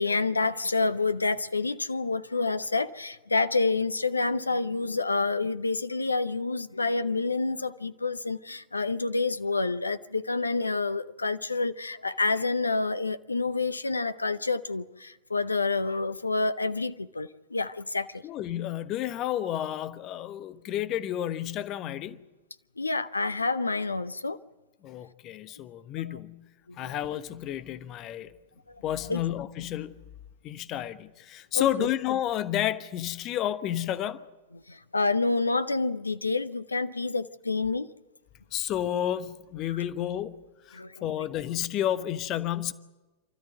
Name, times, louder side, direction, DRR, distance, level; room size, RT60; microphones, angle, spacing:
voice 1, 0.0-18.2 22.8-24.4 26.7-27.0 28.7-28.8 29.1-29.2 31.5-31.9 34.7-37.9 40.7-41.1, left 3 dB, 80° left, 0.7 m, -28 dB
voice 2, 18.2-22.2 24.8-26.5 26.8-28.3 28.8-30.0 30.4-34.2 38.5-42.7, left 11 dB, 35° left, 1.1 m, -31 dB
28.5 x 13.5 x 9.4 m
figure-of-eight pair, 90°, 0 cm